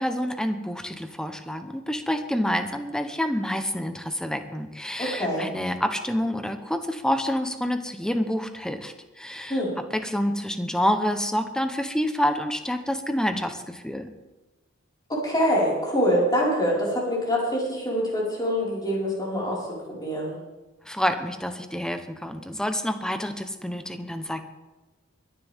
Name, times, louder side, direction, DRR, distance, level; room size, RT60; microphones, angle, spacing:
voice 1, 0.0-9.6 9.9-14.1 20.9-24.5, equal, 5° left, 7 dB, 1.0 m, -28 dB
voice 2, 5.0-5.5 9.5-9.7 15.1-19.6 19.9-20.4, equal, 20° left, -5 dB, 5.2 m, -25 dB
23.0 x 11.0 x 3.7 m, 1.1 s
head